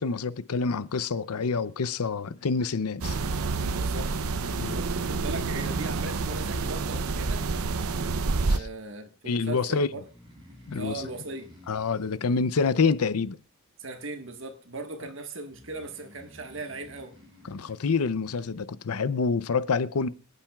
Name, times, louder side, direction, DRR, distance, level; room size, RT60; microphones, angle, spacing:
voice 1, 0.0-3.2 4.6-4.8 8.5-8.7 9.3-9.9 10.7-11.0 11.7-13.4 17.4-20.1, left 4 dB, 90° left, 0.6 m, -27 dB
sound 1, 3.0-8.6, right 3 dB, 80° right, 0.7 m, -28 dB
voice 2, 3.7-4.1 4.5-7.5 8.4-10.1 10.7-11.5 13.8-17.1, right 2 dB, 55° right, 1.5 m, -39 dB
Breathing, 10.0-13.7 15.5-18.6, equal, 20° right, 6.2 m, -53 dB
25.5 x 8.9 x 2.4 m
head